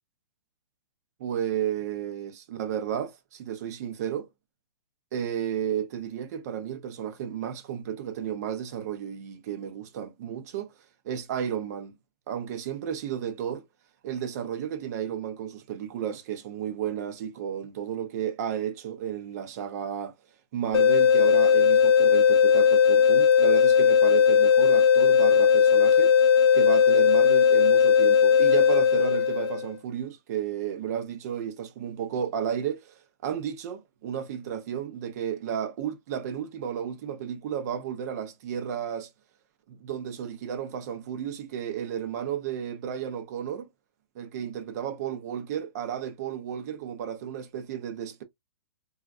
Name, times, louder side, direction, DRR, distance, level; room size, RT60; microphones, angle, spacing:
voice 1, 1.2-4.3 5.1-10.7 11.0-11.9 12.3-13.6 14.0-20.1 20.5-26.2 26.5-39.1 39.7-43.7 44.1-48.2, right 9 dB, 35° right, 0.7 m, -33 dB
sound 1, 20.7-29.7, left 7 dB, 65° left, 0.5 m, -18 dB
3.6 x 2.4 x 2.4 m
hypercardioid pair, 160°, 15 cm